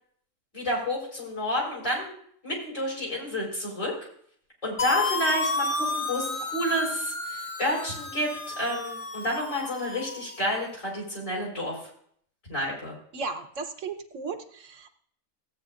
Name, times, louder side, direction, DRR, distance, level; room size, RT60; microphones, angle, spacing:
voice 1, 0.5-2.1 2.4-3.9 4.6-11.8 12.5-12.9, equal, 70° left, -3 dB, 4.7 m, -30 dB
sound 1, 4.8-10.6, left 3 dB, 40° left, 0.5 m, -32 dB
voice 2, 13.1-14.9, right 4 dB, 65° right, 7 dB, 1.2 m, -35 dB
16.0 x 8.7 x 2.4 m, 0.62 s
omnidirectional pair, 1.4 m